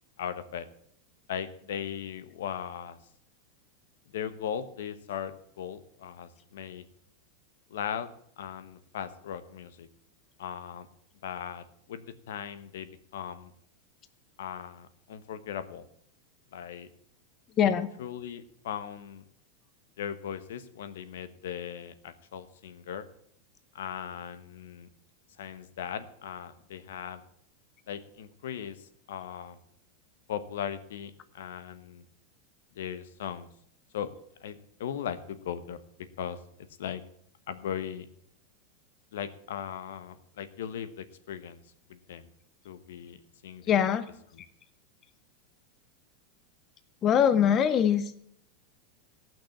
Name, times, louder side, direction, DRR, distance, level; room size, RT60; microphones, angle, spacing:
voice 1, 0.2-0.7 1.3-3.0 4.1-6.8 7.7-8.1 8.4-9.9 10.4-10.9 11.2-13.5 14.4-15.9 16.5-16.9 17.6-17.7 18.0-19.2 20.0-23.0 23.7-24.9 25.4-27.2 27.9-29.6 30.3-32.0 32.8-33.5 33.9-34.1 34.4-35.8 36.2-36.4 36.8-37.0 37.5-38.1 39.1-41.6 41.9-42.3 42.6-43.2 43.4-43.8 44.3-44.4, left 9 dB, 80° left, 12 dB, 1.0 m, -38 dB
voice 2, 17.6-17.9 43.7-44.0 47.0-48.2, left 8 dB, 20° left, 11 dB, 0.5 m, -23 dB
15.5 x 6.1 x 7.1 m, 0.68 s
supercardioid pair, 180°, 0 cm